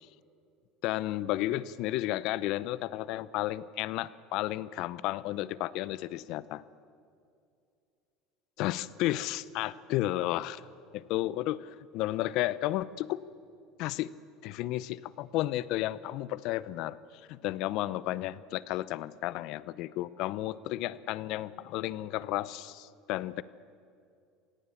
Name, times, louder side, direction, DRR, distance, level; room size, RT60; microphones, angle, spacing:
voice 1, 0.8-6.6 8.6-10.6 10.9-13.2 13.8-14.1 14.4-17.0 17.3-23.4, left 15 dB, 65° left, 18 dB, 0.8 m, -32 dB
27.0 x 18.0 x 7.2 m, 2.4 s
hypercardioid pair, 80°, 0 cm